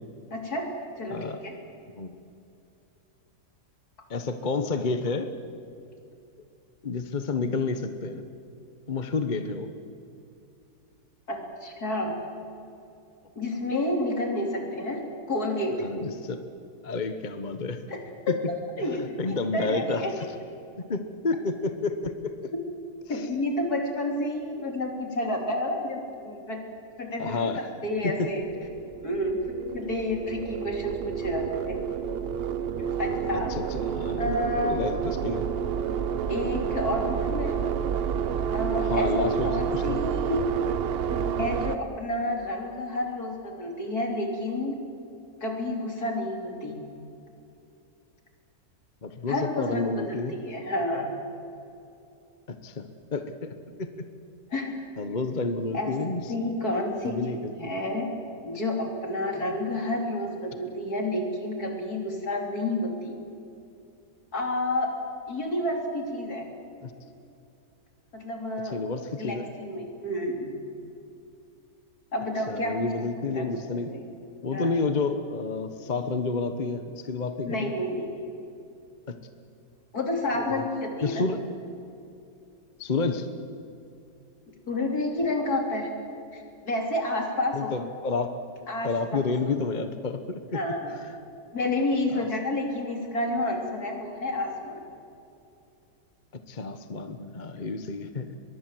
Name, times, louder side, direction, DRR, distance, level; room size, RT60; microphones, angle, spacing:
voice 1, 0.3-0.7 1.0-1.6 11.3-12.2 13.4-15.9 17.9-18.0 18.3-18.4 18.8-20.1 23.1-26.6 27.0-27.5 27.8-28.5 29.0-31.8 33.0-33.5 34.2-35.1 36.3-37.6 38.5-40.4 41.1-44.7 45.4-46.7 49.3-51.1 54.5-54.8 55.7-55.9 56.3-58.1 58.4-63.1 64.3-64.9 65.3-66.5 68.1-68.8 69.2-70.5 72.1-73.1 73.4-74.0 74.5-74.9 77.5-78.3 79.9-81.3 84.7-85.9 86.3-87.7 88.7-89.5 90.5-91.0 91.5-94.9, left 1 dB, 60° left, 2 dB, 3.9 m, -30 dB
voice 2, 4.1-5.3 6.8-8.3 8.9-9.7 15.8-16.4 16.8-17.8 18.3-18.4 18.9-20.3 20.9-22.5 23.1-23.2 27.2-27.7 28.0-28.3 33.5-35.5 38.8-40.0 49.0-50.4 52.5-53.9 55.0-56.3 57.0-57.5 66.8-66.9 68.6-69.4 72.5-73.9 74.4-77.7 79.1-79.2 80.4-80.6 81.0-81.4 82.8-83.3 87.5-88.4 88.8-90.6 92.1-92.3 96.3-98.3, left 3 dB, 30° left, 9 dB, 1.0 m, -30 dB
sound 1, 28.1-41.8, right 8 dB, 55° right, 0.7 m, -29 dB
23.5 x 22.0 x 7.7 m, 2.6 s
omnidirectional pair, 1.8 m